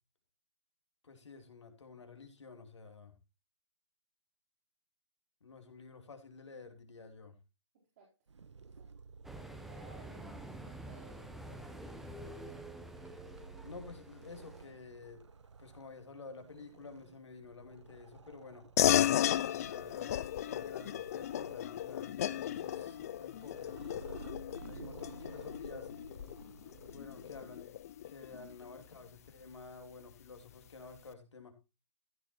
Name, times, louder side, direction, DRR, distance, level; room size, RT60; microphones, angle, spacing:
voice 1, 1.0-3.1 5.4-7.4 13.6-15.2 15.6-18.7 19.4-24.0 24.6-25.9 26.8-27.7 28.1-31.6, left 4 dB, 70° left, 2.8 m, -51 dB
Purr, 8.3-27.6, right 5 dB, 75° right, 1.2 m, -54 dB
sound 1, 9.2-14.8, right 1 dB, ahead, 0.8 m, -48 dB
voice 2, 9.7-11.9, right 3 dB, 35° right, 4.0 m, -59 dB
sound 2, 18.8-28.6, left 11 dB, 30° left, 0.5 m, -34 dB
14.5 x 6.3 x 4.3 m
hypercardioid pair, 145°, 15 cm